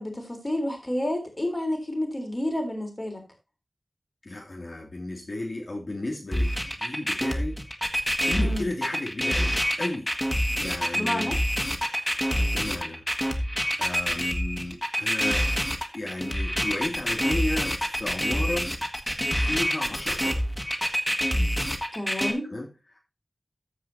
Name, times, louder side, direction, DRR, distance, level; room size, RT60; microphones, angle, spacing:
voice 1, 0.0-3.2 8.4-8.7 10.9-11.4 21.9-22.5, left 1 dB, 30° left, 3 dB, 3.6 m, -30 dB
voice 2, 4.2-7.6 8.2-10.1 10.5-11.4 11.9-13.0 13.8-15.5 15.9-18.7 19.4-20.4 22.5-23.0, left 2 dB, 55° left, -1 dB, 2.8 m, -34 dB
sound 1, 6.3-22.3, equal, 10° left, 1.6 m, -26 dB
14.0 x 4.8 x 4.2 m, 0.28 s
wide cardioid pair, 70°, 0 cm